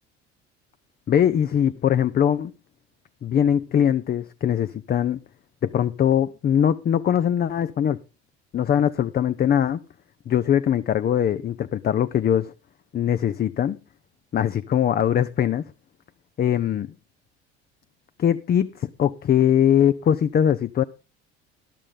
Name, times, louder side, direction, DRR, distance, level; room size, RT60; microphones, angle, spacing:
voice 1, 1.1-2.5 3.2-5.2 5.6-8.0 8.5-9.8 10.3-12.5 12.9-13.8 14.3-15.7 16.4-16.9 18.2-20.8, left 9 dB, 30° left, 0.6 m, -21 dB
13.5 x 11.0 x 3.8 m
hypercardioid pair, 65°, 32 cm